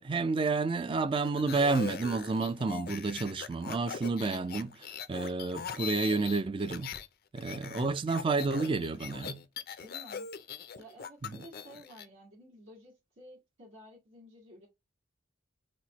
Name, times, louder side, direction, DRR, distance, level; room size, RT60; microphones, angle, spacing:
voice 1, 0.0-6.9 7.3-9.4 11.2-11.4, right 3 dB, 25° right, 0.3 m, -30 dB
sound 1, 1.2-7.1 7.4-12.1, left 7 dB, 50° left, 0.4 m, -41 dB
voice 2, 8.1-8.7 9.8-10.3 10.8-14.7, right 1 dB, 65° right, 1.6 m, -53 dB
4.2 x 2.1 x 2.9 m
head